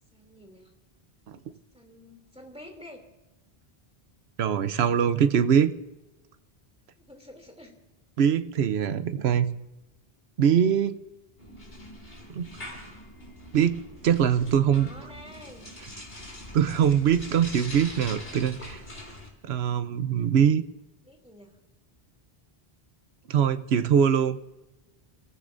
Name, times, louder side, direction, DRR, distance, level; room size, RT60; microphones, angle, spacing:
voice 1, 0.1-0.7 1.7-3.0 7.0-7.8 11.4-11.5 13.4-13.6 14.5-15.7 21.0-21.6, left 1 dB, 5° right, 1 dB, 2.7 m, -49 dB
voice 2, 4.4-5.7 8.2-9.5 10.4-11.0 12.3-12.5 13.5-14.9 16.5-18.8 19.4-20.6 23.3-24.4, right 8 dB, 90° right, 11 dB, 1.0 m, -23 dB
sound 1, 11.4-19.3, left 1 dB, 70° left, 3.6 m, -43 dB
29.0 x 15.0 x 2.6 m, 1.0 s
omnidirectional pair, 1.0 m